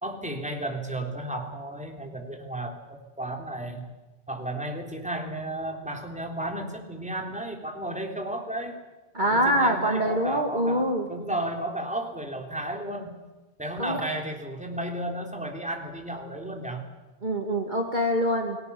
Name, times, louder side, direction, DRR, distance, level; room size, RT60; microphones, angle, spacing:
voice 1, 0.0-3.9 4.3-8.7 9.2-13.1 13.6-16.8, right 1 dB, 5° right, 2 dB, 3.5 m, -33 dB
voice 2, 9.1-11.1 13.8-14.0 17.2-18.6, equal, 45° right, 3 dB, 2.5 m, -24 dB
29.0 x 19.5 x 7.1 m, 1.2 s
omnidirectional pair, 1.1 m